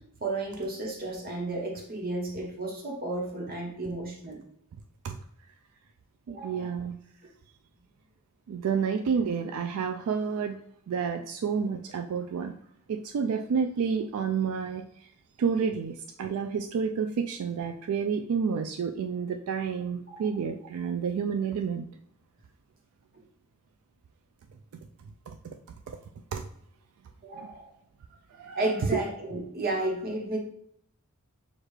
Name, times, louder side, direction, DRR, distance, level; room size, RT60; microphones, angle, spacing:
voice 1, 0.2-4.4 6.3-6.7 20.1-20.3 27.2-27.7 28.6-30.4, right 2 dB, 40° right, 0 dB, 1.0 m, -33 dB
voice 2, 6.3-7.0 8.5-10.6 10.9-12.5 12.9-14.9 15.4-21.9 25.3-25.6 25.9-26.0 26.3-26.4 27.4-27.5 28.4-28.6 28.9-29.0, right 6 dB, 75° right, 6 dB, 0.3 m, -30 dB
6.4 x 2.4 x 3.1 m, 0.68 s
head